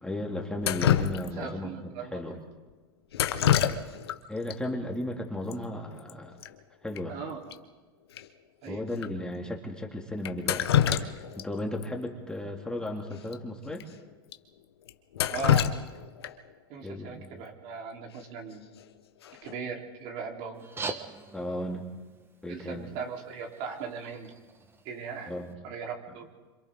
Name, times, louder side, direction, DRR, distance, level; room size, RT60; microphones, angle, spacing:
voice 1, 0.0-2.4 4.3-6.4 6.8-7.2 8.7-11.1 11.4-13.9 16.8-17.4 21.3-21.9 22.4-22.9 25.3-25.5, left 1 dB, 5° left, 0 dB, 2.4 m, -35 dB
Drip, 0.6-1.6 3.1-4.2 4.5-4.6 5.5-5.6 5.9-6.1 6.4-6.5 7.0-7.1 7.5-7.6 8.2-8.3 9.0-9.1 10.2-11.5 11.8-11.9 13.2-13.3 13.8-13.9 14.3-14.4 14.9-16.5 18.5-18.8 19.2-19.6, left 10 dB, 90° left, 1.2 m, -26 dB
voice 2, 1.4-2.4 3.4-3.7 7.1-7.6 8.6-8.8 15.3-15.7 16.7-18.6 19.4-20.7 22.5-24.3 24.8-25.3 25.6-26.3, right 5 dB, 55° right, 1 dB, 3.6 m, -38 dB
sound 1, 20.5-25.5, right 3 dB, 15° right, 1.3 m, -43 dB
27.5 x 26.0 x 3.7 m, 1.3 s
hypercardioid pair, 120°, 13 cm